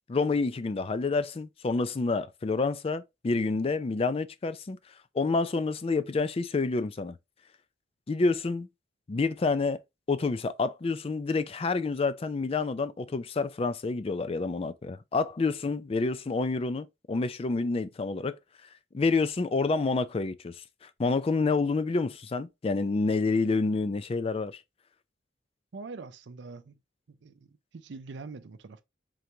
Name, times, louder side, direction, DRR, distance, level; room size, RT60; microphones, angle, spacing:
voice 1, 0.1-4.8 5.1-7.1 8.1-8.7 9.1-9.8 10.1-18.4 18.9-20.5 20.8-24.6, left 3 dB, 30° left, 0.4 m, -28 dB
voice 2, 25.7-26.8 27.1-28.8, right 4 dB, 65° right, 0.5 m, -44 dB
3.8 x 3.4 x 3.0 m
head